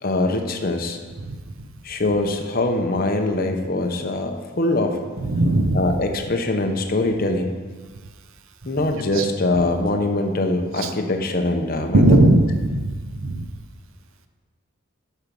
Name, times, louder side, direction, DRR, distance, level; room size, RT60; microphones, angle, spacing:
voice 1, 0.0-1.0 1.8-5.0 5.7-7.5 8.6-12.3, left 2 dB, 45° left, 4 dB, 0.8 m, -23 dB
voice 2, 5.2-5.9 9.2-9.3 10.8-10.9 11.9-13.0 13.2-13.5, right 1 dB, 75° right, 7 dB, 0.7 m, -18 dB
8.8 x 6.0 x 5.2 m, 1.4 s
head